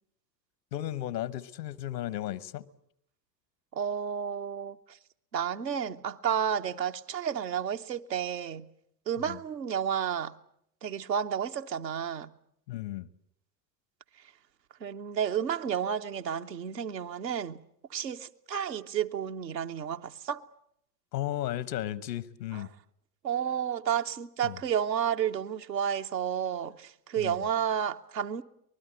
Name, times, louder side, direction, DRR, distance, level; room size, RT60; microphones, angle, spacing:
voice 1, 0.7-2.7 9.3-9.4 12.7-13.1 21.1-22.7 24.4-24.6 27.2-27.4, left 13 dB, 80° left, 1.1 m, -34 dB
voice 2, 3.7-4.8 5.3-8.7 9.1-10.3 10.8-12.3 14.8-17.6 17.9-20.4 22.5-22.6 23.2-28.4, right 8 dB, 85° right, 0.9 m, -31 dB
25.0 x 20.0 x 7.7 m
figure-of-eight pair, 65°, 49 cm